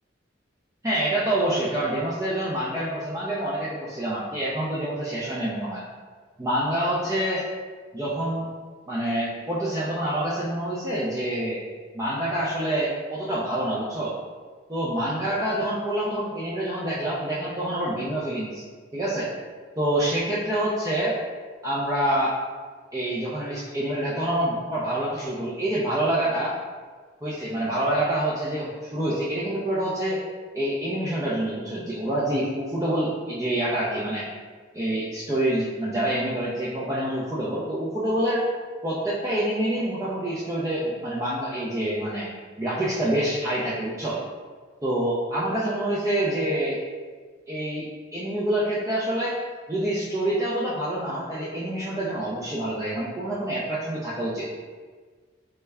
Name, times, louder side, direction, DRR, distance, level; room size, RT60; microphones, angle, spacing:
voice 1, 0.8-5.8 6.4-7.4 7.9-8.5 8.9-11.6 11.9-14.1 14.7-18.6 18.9-19.3 19.8-21.2 21.6-22.3 22.9-26.6 27.2-30.2 30.5-34.3 34.7-38.5 38.8-42.3 42.6-44.2 44.8-46.8 47.5-49.4 49.7-54.5, right 1 dB, 15° right, -8 dB, 0.4 m, -26 dB
3.2 x 2.1 x 3.4 m, 1.5 s
head